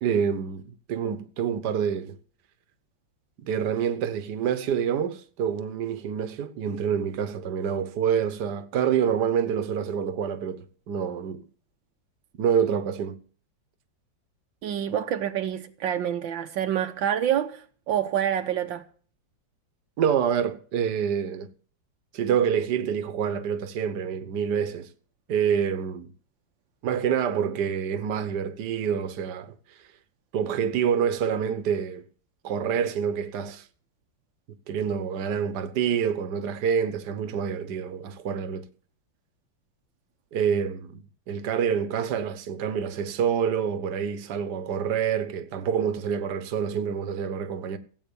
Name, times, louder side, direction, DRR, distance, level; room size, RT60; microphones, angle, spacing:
voice 1, 0.0-0.6 0.9-2.2 3.4-11.5 12.4-13.2 20.0-21.5 22.1-24.9 25.3-26.1 26.8-29.5 30.3-32.0 32.4-33.6 34.7-38.6 40.3-47.8, right 7 dB, 65° right, 1.7 m, -27 dB
voice 2, 14.6-18.9, right 10 dB, 85° right, 1.8 m, -27 dB
16.5 x 8.4 x 7.0 m
omnidirectional pair, 2.0 m